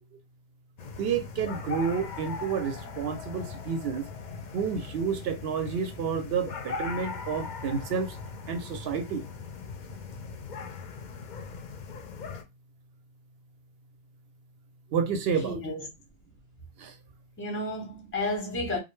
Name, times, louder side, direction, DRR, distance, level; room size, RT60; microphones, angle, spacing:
sound 1, 0.8-12.4, left 4 dB, 55° left, 0.6 m, -39 dB
voice 1, 1.0-4.0 4.5-8.2 8.5-9.2 14.9-15.6 16.8-16.9, right 6 dB, 75° right, 0.8 m, -30 dB
voice 2, 15.4-15.9 17.4-18.8, left 2 dB, 15° left, 0.6 m, -32 dB
2.5 x 2.0 x 3.1 m
omnidirectional pair, 1.1 m